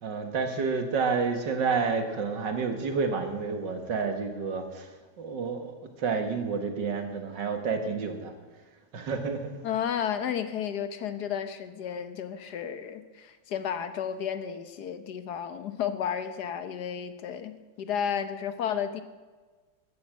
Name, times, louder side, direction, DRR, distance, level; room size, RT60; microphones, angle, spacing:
voice 1, 0.0-4.9 5.2-5.7 6.0-8.3 8.9-9.6, right 5 dB, 75° right, 6 dB, 2.3 m, -29 dB
voice 2, 9.6-19.0, left 8 dB, 65° left, 11 dB, 1.4 m, -32 dB
15.0 x 12.5 x 6.3 m, 1.4 s
omnidirectional pair, 2.0 m